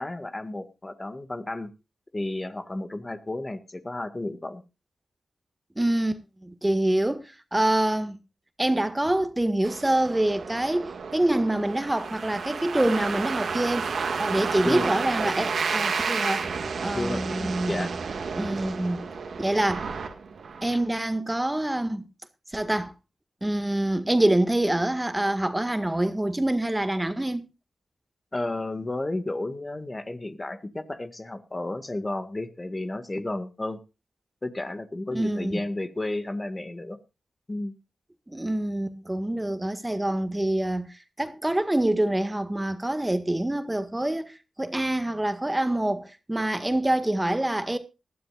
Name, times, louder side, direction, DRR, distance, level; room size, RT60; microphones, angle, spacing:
voice 1, 0.0-1.7 2.1-4.6 14.6-14.9 16.9-17.9 28.3-33.8 34.4-37.0 37.5-37.7, left 2 dB, 30° left, 1.8 m, -32 dB
voice 2, 5.8-8.2 8.6-13.9 14.2-16.5 16.8-17.9 18.4-19.0 19.4-19.9 20.6-22.1 22.5-22.9 23.4-27.5 35.1-35.6 38.3-47.8, right 1 dB, 15° right, 1.7 m, -26 dB
sound 1, 9.6-20.8, right 5 dB, 75° right, 1.8 m, -31 dB
20.0 x 12.5 x 2.4 m
supercardioid pair, 40°, 0 cm